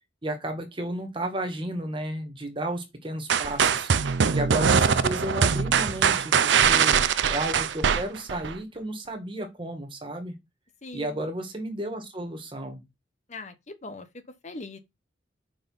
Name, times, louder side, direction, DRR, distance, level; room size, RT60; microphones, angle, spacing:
voice 1, 0.2-3.9 4.3-6.9 7.3-10.3 10.9-12.8, right 1 dB, 30° right, 1.7 m, -33 dB
sound 1, 3.3-8.6, right 6 dB, 75° right, 0.5 m, -22 dB
voice 2, 6.6-7.1 10.8-11.3 13.3-14.8, left 2 dB, 40° left, 1.0 m, -41 dB
5.7 x 4.8 x 5.5 m
head